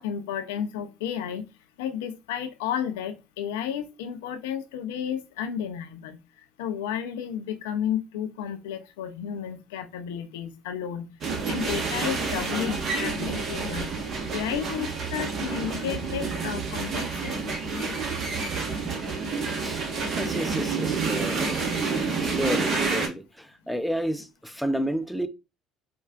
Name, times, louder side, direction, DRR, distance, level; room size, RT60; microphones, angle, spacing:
voice 1, 0.0-1.4 1.8-13.9 14.3-18.0, left 9 dB, 85° left, 0.4 m, -32 dB
sound 1, 11.2-23.1, right 4 dB, 50° right, 1.0 m, -29 dB
voice 2, 20.2-21.7 22.2-25.3, equal, ahead, 0.5 m, -31 dB
4.3 x 2.3 x 2.3 m
hypercardioid pair, 65°, 0 cm